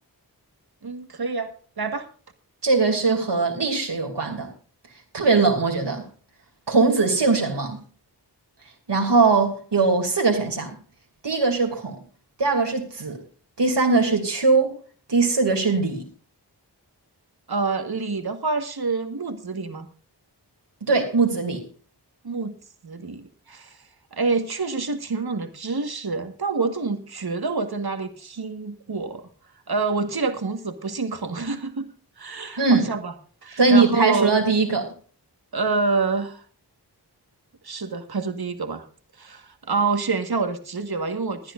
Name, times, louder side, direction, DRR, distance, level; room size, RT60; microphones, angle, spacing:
voice 1, 0.8-2.1 17.5-19.9 22.2-22.6 22.8-23.8 24.1-29.2 29.7-31.9 32.2-33.1 33.4-34.4 35.5-36.4 37.6-38.8 39.2-41.5, right 4 dB, 65° right, 1.6 m, -27 dB
voice 2, 2.6-4.5 5.1-6.0 6.7-7.8 8.9-10.8 11.2-12.0 12.4-13.2 13.6-14.7 15.1-16.0 20.9-21.6 32.6-32.9 33.6-34.9, right 4 dB, 80° right, 2.7 m, -20 dB
21.0 x 10.5 x 2.5 m
wide cardioid pair, 65°, 41 cm